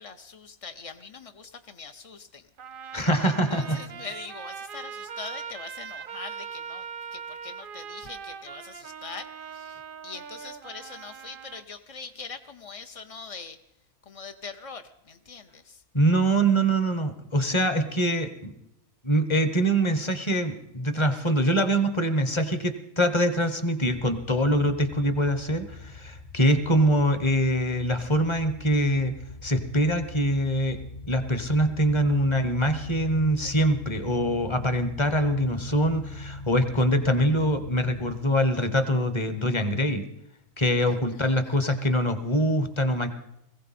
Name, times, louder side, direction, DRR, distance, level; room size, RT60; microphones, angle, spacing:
voice 1, 0.0-2.5 3.2-13.6 14.0-15.8 40.9-41.6, left 5 dB, 65° left, 7 dB, 0.3 m, -43 dB
Trumpet, 2.6-11.6, right 7 dB, 50° right, 0.6 m, -40 dB
voice 2, 2.9-3.8 15.9-18.5 19.0-29.1 29.4-30.8 31.1-40.0 40.6-43.1, equal, 25° left, 10 dB, 0.9 m, -24 dB
sound 1, 25.5-38.2, left 2 dB, 45° left, 1.3 m, -41 dB
20.5 x 15.5 x 4.2 m, 0.83 s
omnidirectional pair, 1.5 m